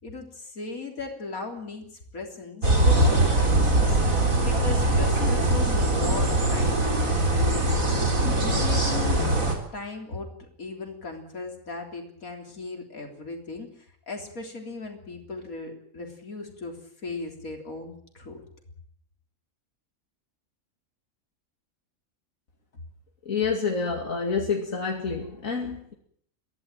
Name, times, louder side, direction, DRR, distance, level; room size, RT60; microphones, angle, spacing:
voice 1, 0.0-1.9 2.1-7.9 8.6-9.3 9.7-10.3 10.6-13.7 14.1-16.8 17.0-18.4, left 3 dB, 90° left, 2 dB, 3.9 m, -37 dB
sound 1, 2.6-9.6, right 1 dB, 75° right, 4.5 m, -22 dB
voice 2, 23.3-25.9, left 5 dB, 70° left, 1 dB, 2.9 m, -28 dB
24.0 x 16.5 x 9.0 m, 0.65 s
omnidirectional pair, 1.4 m